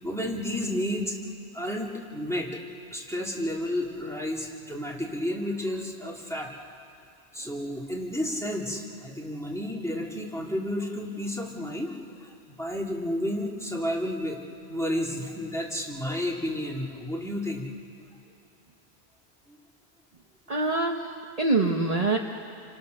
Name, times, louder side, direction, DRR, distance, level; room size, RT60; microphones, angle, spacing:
voice 1, 0.0-1.2 1.5-2.6 2.9-6.5 7.3-12.3 12.6-14.4 14.7-17.7 19.5-19.6, left 1 dB, 5° left, -2 dB, 2.7 m, -31 dB
voice 2, 20.5-22.2, right 3 dB, 35° right, 2 dB, 1.1 m, -25 dB
29.5 x 25.0 x 6.5 m, 2.5 s
omnidirectional pair, 1.1 m